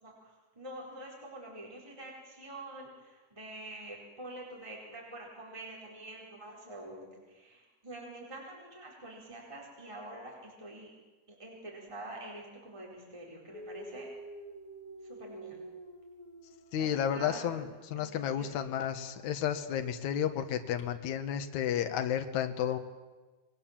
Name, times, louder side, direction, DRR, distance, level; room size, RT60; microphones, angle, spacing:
voice 1, 0.0-10.9 11.4-14.1 15.0-15.6 16.8-17.7 17.9-18.6, right 1 dB, 10° right, -2 dB, 4.3 m, -46 dB
Dog, 13.5-17.5 18.5-18.7 20.8-20.9, right 1 dB, 45° left, 3.1 m, -48 dB
voice 2, 16.7-22.8, left 9 dB, 75° left, 7 dB, 2.6 m, -32 dB
28.0 x 21.5 x 7.5 m, 1.2 s
omnidirectional pair, 3.5 m